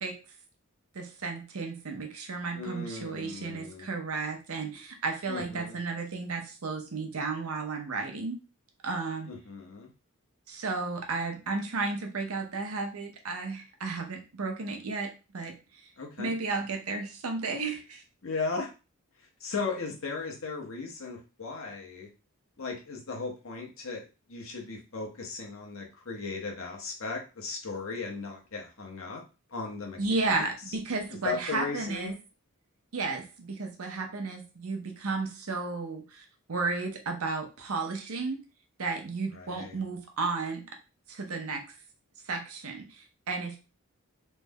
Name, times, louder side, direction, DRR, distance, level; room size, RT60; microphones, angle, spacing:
voice 1, 0.9-8.4 8.8-9.3 10.5-15.5 16.2-18.0 30.0-32.1 32.9-38.4 38.8-40.6 41.1-41.6 42.3-43.6, right 3 dB, 90° right, 4 dB, 0.8 m, -33 dB
voice 2, 2.5-3.9 5.3-5.8 9.3-9.9 16.0-16.4 18.2-18.7 19.4-22.1 22.6-29.2 29.5-30.0 30.2-30.5 31.2-32.2 39.3-39.8, left 4 dB, 70° left, 0 dB, 0.9 m, -37 dB
3.2 x 2.1 x 3.5 m, 0.30 s
head